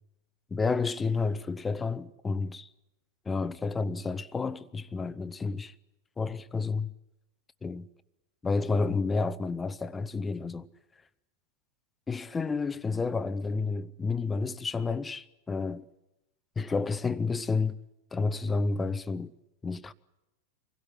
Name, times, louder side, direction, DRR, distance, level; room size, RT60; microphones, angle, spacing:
voice 1, 0.5-2.7 3.3-5.7 6.2-6.9 7.6-7.9 8.4-10.7 12.1-15.8 16.6-17.8 18.1-19.3 19.6-19.9, left 4 dB, 15° left, 0.7 m, -30 dB
25.5 x 16.5 x 9.8 m
figure-of-eight pair, 90°, 0 cm